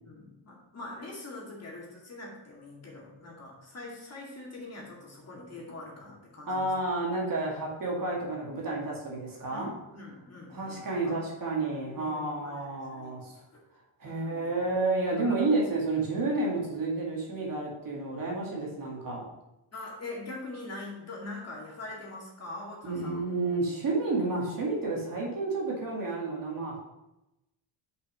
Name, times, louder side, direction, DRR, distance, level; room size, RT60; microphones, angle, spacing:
voice 1, 0.0-6.7 9.5-11.2 11.8-13.3 14.0-14.5 15.1-15.5 19.7-23.2, left 2 dB, 30° left, -3 dB, 2.3 m, -43 dB
voice 2, 6.5-9.7 10.5-13.3 14.0-19.2 22.8-26.8, right 2 dB, 40° right, -3 dB, 2.2 m, -30 dB
6.3 x 5.6 x 6.1 m, 0.94 s
cardioid pair, 135°, 50 cm